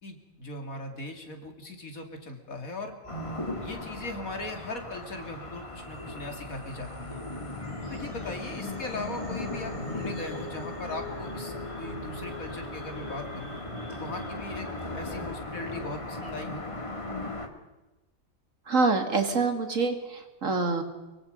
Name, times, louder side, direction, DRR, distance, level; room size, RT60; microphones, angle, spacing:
voice 1, 0.0-2.9 3.6-7.2 7.9-13.5 13.9-14.7 14.9-16.6, left 2 dB, 80° left, 4 dB, 3.3 m, -39 dB
sound 1, 3.0-15.3, left 1 dB, 40° right, 5.4 m, -44 dB
sound 2, 3.1-17.5, left 2 dB, 20° left, 2.0 m, -38 dB
voice 2, 18.7-20.8, right 4 dB, 65° right, 6 dB, 2.7 m, -26 dB
24.0 x 23.5 x 5.4 m, 1.1 s
omnidirectional pair, 1.5 m